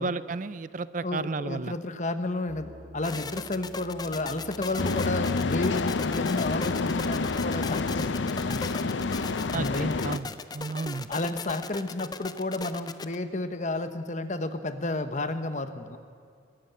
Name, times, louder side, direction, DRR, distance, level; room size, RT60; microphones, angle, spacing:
voice 1, 0.0-1.8 9.5-11.1, right 4 dB, 45° right, 16 dB, 0.5 m, -33 dB
voice 2, 1.0-8.7 9.5-10.0 11.1-16.0, left 2 dB, 40° left, 10 dB, 1.0 m, -32 dB
sound 1, 2.5-8.0, equal, 70° right, 3.6 m, -49 dB
sound 2, 3.0-13.2, left 4 dB, 20° left, 0.5 m, -38 dB
sound 3, 4.8-10.2, left 3 dB, 85° left, 0.6 m, -28 dB
22.0 x 14.0 x 9.0 m, 2.2 s
head